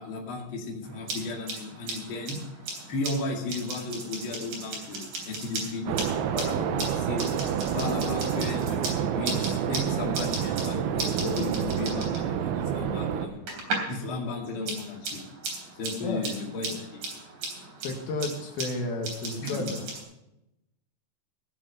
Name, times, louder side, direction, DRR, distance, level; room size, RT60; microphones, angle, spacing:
voice 1, 0.0-2.4 2.9-7.2 7.7-13.6 13.9-15.2 15.8-17.0 19.4-19.7, left 3 dB, 40° left, -1 dB, 2.6 m, -34 dB
sound 1, 0.8-14.0 14.3-20.0, right 3 dB, 60° right, 5.0 m, -37 dB
sound 2, 5.9-13.3, right 8 dB, 85° right, 2.7 m, -28 dB
voice 2, 17.8-19.8, left 2 dB, 75° left, 2 dB, 3.3 m, -32 dB
17.0 x 7.6 x 5.5 m, 0.88 s
omnidirectional pair, 4.4 m